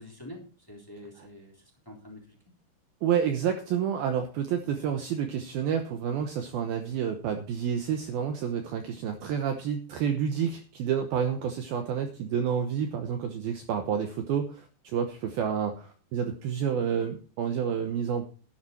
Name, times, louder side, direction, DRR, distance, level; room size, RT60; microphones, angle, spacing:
voice 1, 0.0-2.4, left 1 dB, 5° left, 0 dB, 2.4 m, -46 dB
voice 2, 3.0-18.3, right 8 dB, 80° right, 6 dB, 2.3 m, -29 dB
11.5 x 11.0 x 4.3 m, 0.38 s
omnidirectional pair, 5.5 m